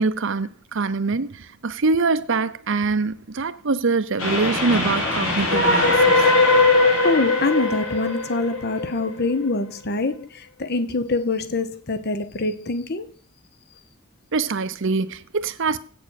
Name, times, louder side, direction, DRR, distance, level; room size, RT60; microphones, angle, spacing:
voice 1, 0.0-6.2 14.3-15.8, right 4 dB, 60° right, 0.7 m, -24 dB
Train, 4.2-9.5, left 2 dB, 80° left, 3.8 m, -20 dB
voice 2, 7.0-13.1, left 3 dB, 50° left, 0.9 m, -25 dB
8.6 x 7.1 x 6.4 m
head